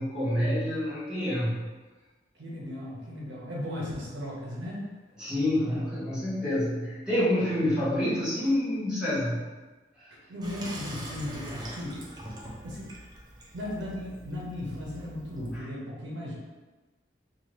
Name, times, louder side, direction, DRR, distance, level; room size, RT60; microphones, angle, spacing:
voice 1, 0.0-1.6 5.2-9.4, left 1 dB, 5° right, -11 dB, 0.9 m, -27 dB
voice 2, 2.4-4.8 10.3-12.0 12.6-12.9 13.5-16.3, left 1 dB, 75° right, -4 dB, 0.7 m, -36 dB
Water tap faucet / Sink (filling or washing), 10.4-15.6, right 1 dB, 20° right, 0.4 m, -43 dB
2.7 x 2.3 x 3.1 m, 1.3 s
head